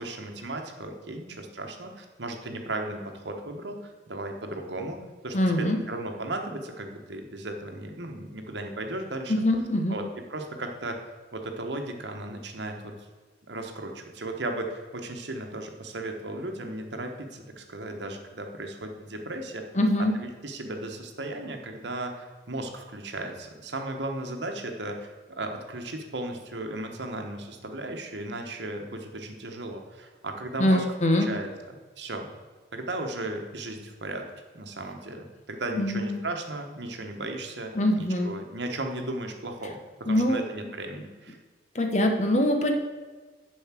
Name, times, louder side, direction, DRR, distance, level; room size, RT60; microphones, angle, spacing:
voice 1, 0.0-5.0 5.2-9.3 9.9-10.0 10.3-11.0 11.3-12.9 13.5-19.6 20.0-30.8 31.2-31.5 32.0-32.3 32.7-34.2 34.5-41.4, right 2 dB, 70° right, 4 dB, 1.2 m, -36 dB
voice 2, 5.3-5.8 9.3-10.0 19.7-20.1 30.6-31.3 35.7-36.2 37.7-38.3 40.0-40.4 41.7-42.7, left 1 dB, 40° left, 4 dB, 1.0 m, -23 dB
7.2 x 5.4 x 7.4 m, 1.3 s
head